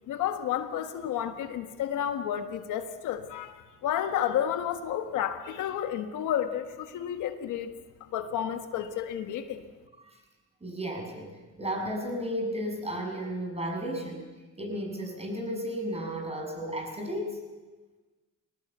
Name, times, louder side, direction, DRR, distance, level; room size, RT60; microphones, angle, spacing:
voice 1, 0.1-7.7 8.0-9.7, left 10 dB, 90° left, 7 dB, 1.5 m, -31 dB
voice 2, 10.6-14.2 14.6-17.4, equal, 20° right, 2 dB, 6.8 m, -34 dB
20.5 x 19.0 x 8.3 m, 1.3 s
cardioid pair, 90°, 30 cm